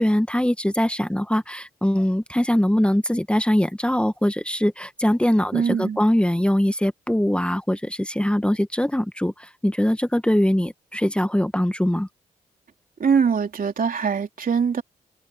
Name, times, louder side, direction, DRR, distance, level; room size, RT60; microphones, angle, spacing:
voice 1, 0.0-12.1, left 1 dB, 5° left, 1.6 m, -22 dB
voice 2, 5.5-6.0 13.0-14.8, right 6 dB, 60° right, 3.4 m, -22 dB
supercardioid pair, 45°, 17 cm